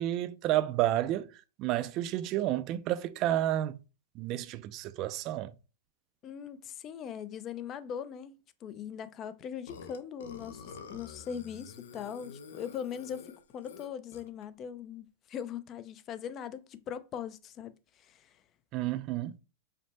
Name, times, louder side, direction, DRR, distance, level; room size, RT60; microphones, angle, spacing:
voice 1, 0.0-3.8 4.2-5.5 18.7-19.4, right 13 dB, 40° right, 0.4 m, -31 dB
voice 2, 6.2-18.3, left 8 dB, 30° left, 0.4 m, -40 dB
Burping eructation, 9.7-14.4, left 5 dB, 85° left, 0.7 m, -48 dB
5.1 x 2.1 x 4.1 m
supercardioid pair, 140°, 0 cm